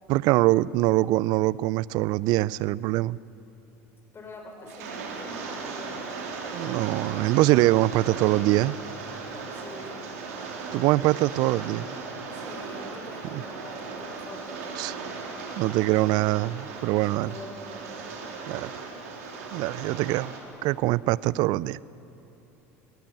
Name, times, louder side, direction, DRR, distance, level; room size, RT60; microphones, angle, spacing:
voice 1, 0.1-3.2 6.5-8.8 10.7-11.9 13.3-13.4 14.8-14.9 15.6-17.3 18.5-18.9 19.5-20.3 20.6-21.8, right 18 dB, 60° right, 22 dB, 0.4 m, -23 dB
voice 2, 4.1-6.4 9.5-10.1 12.3-15.2 17.2-18.0, left 2 dB, 30° left, 2 dB, 6.3 m, -44 dB
Rain, 4.7-20.4, right 4 dB, 80° right, 3.5 m, -37 dB
20.5 x 17.0 x 9.3 m, 2.9 s
hypercardioid pair, 75°, 8 cm